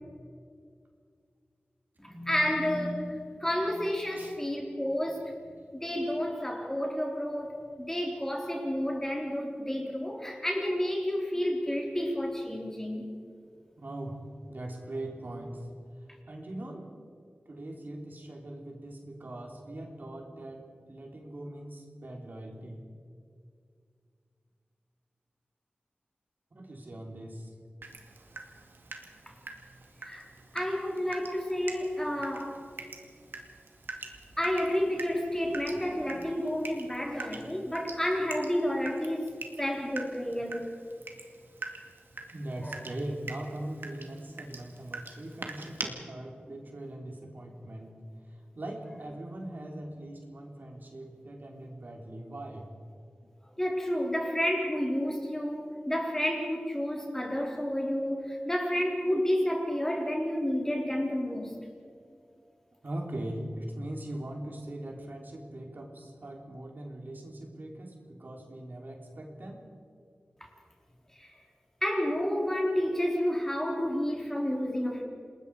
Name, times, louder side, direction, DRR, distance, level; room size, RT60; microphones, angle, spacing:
voice 1, 2.0-5.3 5.8-13.0 30.0-30.3 30.5-32.6 34.4-40.7 42.6-42.8 53.6-61.5 70.4-70.5 71.2-71.3 71.8-75.0, equal, 15° left, 0 dB, 3.9 m, -30 dB
voice 2, 13.8-14.2 14.5-15.7 16.3-16.9 17.5-22.8 26.5-27.5 42.3-48.0 48.3-52.7 62.8-69.6, right 1 dB, 60° right, 1 dB, 3.5 m, -41 dB
Water tap faucet / Drip, 27.8-45.8, right 3 dB, 90° right, 2.1 m, -44 dB
28.5 x 20.5 x 4.8 m, 2.2 s
wide cardioid pair, 85°, 4 cm